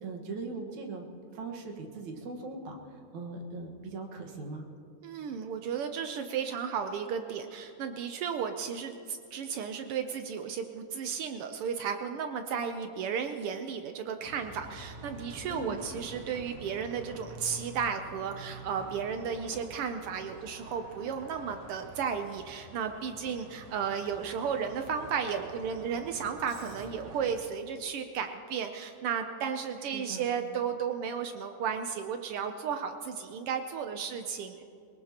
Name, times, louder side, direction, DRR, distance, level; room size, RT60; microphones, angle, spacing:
voice 1, 0.0-1.0 1.3-4.7 15.5-15.8 29.8-30.3, right 3 dB, 75° right, 2 dB, 2.8 m, -40 dB
voice 2, 5.0-34.6, right 7 dB, 90° right, 7 dB, 1.2 m, -34 dB
Bus, 14.2-27.4, right 2 dB, 55° right, 2.0 m, -48 dB
22.5 x 20.0 x 2.9 m, 2.5 s
omnidirectional pair, 3.4 m